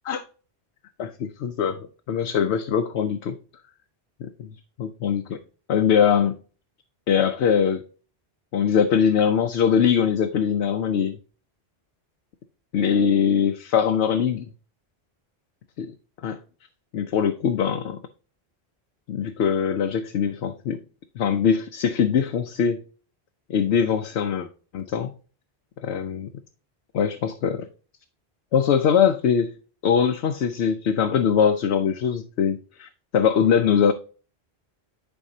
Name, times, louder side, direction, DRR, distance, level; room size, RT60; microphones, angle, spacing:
voice 1, 1.0-3.4 4.2-4.5 4.8-5.4 5.7-6.3 7.1-7.8 8.5-11.2 12.7-14.5 15.8-15.9 16.2-16.4 16.9-18.0 19.1-20.8 21.2-22.8 23.5-24.5 24.7-25.1 25.8-26.3 26.9-27.7 28.5-29.5 29.8-33.9, left 7 dB, 85° left, 0.9 m, -22 dB
10.5 x 4.6 x 2.7 m
omnidirectional pair, 1.1 m